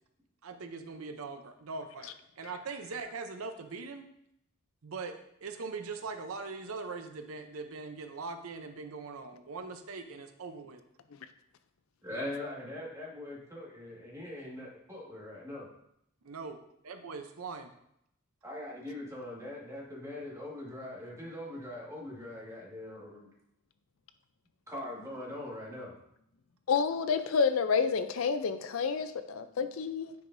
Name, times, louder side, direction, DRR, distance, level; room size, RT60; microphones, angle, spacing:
voice 1, 0.4-2.1 2.4-4.1 4.8-5.1 5.4-10.8 16.2-16.6 16.8-17.7, right 4 dB, 85° right, 7 dB, 0.7 m, -41 dB
voice 2, 12.0-15.7 18.4-23.3 24.7-25.9, left 1 dB, 15° right, -4 dB, 1.7 m, -41 dB
voice 3, 26.7-30.1, left 5 dB, 70° left, 10 dB, 0.5 m, -29 dB
9.5 x 4.8 x 2.6 m, 0.75 s
head